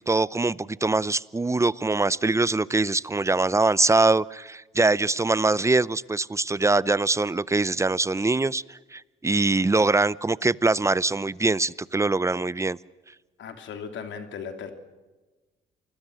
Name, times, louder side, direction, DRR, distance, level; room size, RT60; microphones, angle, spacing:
voice 1, 0.0-12.8, right 3 dB, 15° right, 20 dB, 0.6 m, -23 dB
voice 2, 13.4-14.7, left 6 dB, 70° left, 7 dB, 3.1 m, -37 dB
27.5 x 21.0 x 6.5 m, 1.2 s
cardioid pair, 90°, 20 cm